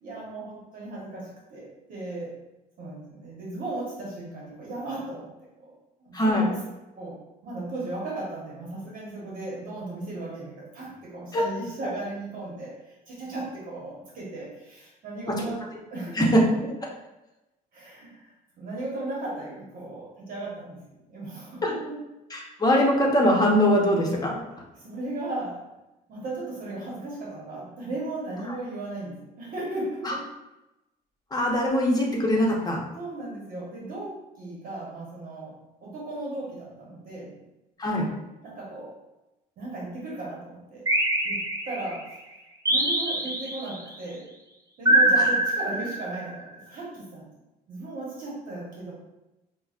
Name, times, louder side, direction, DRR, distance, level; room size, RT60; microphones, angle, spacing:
voice 1, 0.0-2.3 2.8-5.3 5.6-5.7 6.0-6.6 7.0-15.6 15.9-16.3 16.6-16.7 17.7-22.0 24.8-25.6 26.1-30.3 33.0-37.3 38.4-39.0 39.6-40.9 41.2-42.2 42.7-44.3 44.8-47.3 47.7-48.9, right 2 dB, 55° right, -4 dB, 1.1 m, -36 dB
voice 2, 6.1-6.5 11.3-11.4 16.2-16.4 21.6-21.7 22.3-24.4 30.0-30.1 31.3-32.8 37.8-38.1, equal, 20° left, -2 dB, 0.9 m, -22 dB
sound 1, 40.9-42.0 42.7-43.8 44.9-46.3, right 1 dB, 20° right, 0.7 m, -23 dB
5.6 x 2.2 x 2.4 m, 0.98 s
cardioid pair, 110°, 17 cm